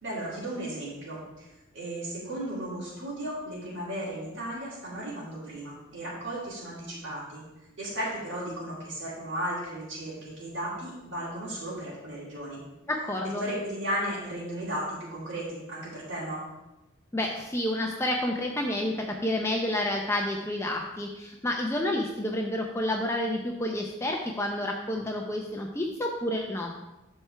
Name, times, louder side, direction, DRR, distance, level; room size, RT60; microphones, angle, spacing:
voice 1, 0.0-1.5 1.7-7.4 7.8-12.6 13.4-16.4, right 1 dB, 65° right, -8 dB, 2.6 m, -35 dB
voice 2, 12.9-13.5 17.1-26.7, left 1 dB, 15° left, 0 dB, 0.5 m, -29 dB
13.0 x 4.4 x 3.3 m, 0.99 s
head